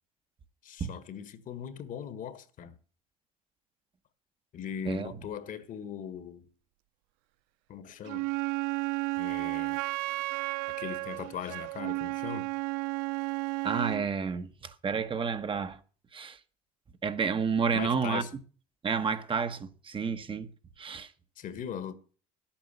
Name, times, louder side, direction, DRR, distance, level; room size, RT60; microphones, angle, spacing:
voice 1, 0.6-2.8 4.5-6.5 7.7-8.3 9.2-9.8 10.8-12.5 17.7-18.4 21.4-21.9, left 8 dB, 55° left, 1.6 m, -39 dB
Wind instrument woodwind instrument, 8.0-14.1, right 23 dB, 75° right, 0.5 m, -33 dB
voice 2, 13.6-15.8 16.1-16.4 17.0-18.2 18.8-20.5 20.8-21.1, right 5 dB, 30° right, 1.2 m, -30 dB
11.0 x 8.8 x 6.9 m
hypercardioid pair, 80°, 17 cm